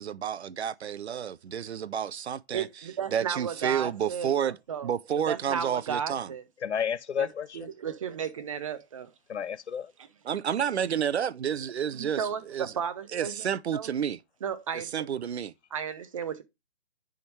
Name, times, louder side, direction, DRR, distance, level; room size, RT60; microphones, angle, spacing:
voice 1, 0.0-2.7 3.1-4.6 4.8-6.3 10.2-12.7 13.1-14.2 14.7-15.5, right 8 dB, 75° right, 0.5 m, -30 dB
voice 2, 2.5-4.9 5.3-6.4 7.2-7.3 7.5-9.1 11.9-13.5 13.7-13.9 14.4-15.1 15.7-16.4, right 8 dB, 30° right, 0.7 m, -34 dB
voice 3, 6.6-7.7 9.3-9.9, left 8 dB, 85° left, 0.6 m, -31 dB
10.0 x 3.6 x 3.2 m
hypercardioid pair, 150°, 33 cm